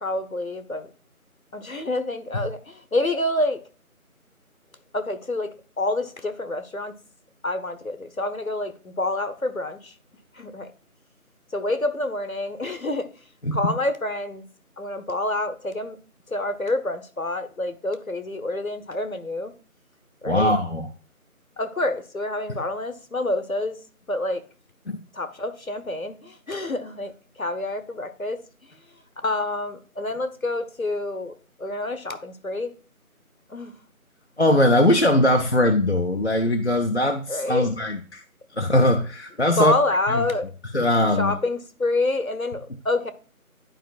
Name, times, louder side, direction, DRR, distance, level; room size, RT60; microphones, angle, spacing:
voice 1, 0.0-0.9 1.5-3.6 4.9-5.5 5.8-7.0 7.4-9.9 10.4-10.7 11.5-13.1 13.5-14.4 14.8-16.0 16.3-19.5 20.2-20.5 21.6-23.8 24.1-24.4 25.2-27.1 27.4-28.4 29.2-31.3 31.6-32.7 33.5-33.7 37.3-37.7 39.6-40.5 41.2-43.1, left 2 dB, 70° left, 1.1 m, -27 dB
voice 2, 13.4-13.7 20.2-20.9 22.5-22.6 24.9-25.0 34.4-38.2 38.5-39.7 40.1-40.3 40.7-41.4, left 1 dB, 50° left, 0.7 m, -21 dB
11.5 x 5.0 x 2.4 m
figure-of-eight pair, 175°, 44 cm